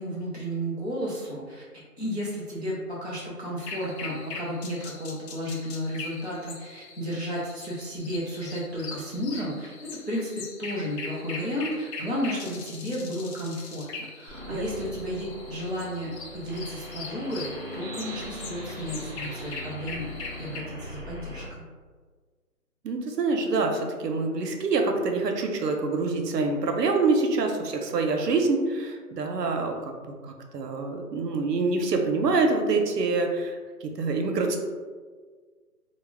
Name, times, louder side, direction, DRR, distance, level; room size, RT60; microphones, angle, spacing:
voice 1, 0.0-1.6 2.0-13.9 14.1-20.1 20.4-21.6, equal, 45° left, -7 dB, 0.4 m, -33 dB
sound 1, 3.6-20.6, left 4 dB, 85° left, 0.7 m, -41 dB
sound 2, 14.3-21.5, left 1 dB, 35° right, 0.6 m, -40 dB
voice 2, 22.8-34.6, right 3 dB, 80° right, 3 dB, 0.6 m, -26 dB
2.3 x 2.0 x 3.3 m, 1.5 s
hypercardioid pair, 180°, 48 cm